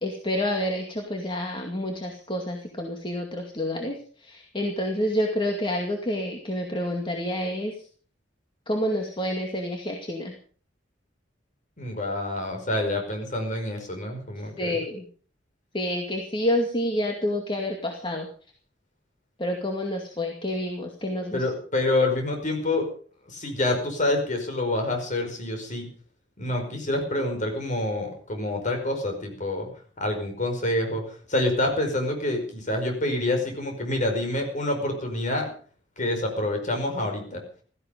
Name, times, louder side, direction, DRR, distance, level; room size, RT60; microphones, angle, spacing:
voice 1, 0.0-4.0 4.2-7.7 8.7-10.3 14.6-15.1 15.7-18.3 19.4-21.4, left 1 dB, 30° left, 2 dB, 2.3 m, -28 dB
voice 2, 11.8-14.8 21.3-22.9 23.3-25.9 26.4-29.7 30.0-31.0 31.3-35.5 36.0-37.4, left 1 dB, 45° left, 4 dB, 5.2 m, -27 dB
16.5 x 14.5 x 5.2 m, 0.43 s
head